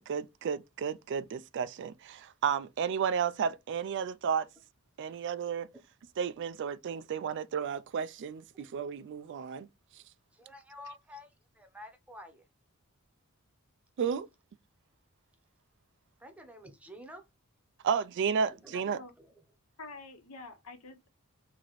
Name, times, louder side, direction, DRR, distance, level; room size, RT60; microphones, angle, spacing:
voice 1, 0.0-4.5 5.0-5.7 6.2-9.7 14.0-14.3 17.8-19.0, right 7 dB, 55° right, 0.3 m, -32 dB
voice 2, 10.3-12.4 16.2-17.2 18.4-18.9 19.2-19.3, left 1 dB, 5° right, 0.8 m, -50 dB
voice 3, 18.7-19.1 19.8-21.1, left 3 dB, 75° left, 0.9 m, -47 dB
3.1 x 2.8 x 4.0 m
head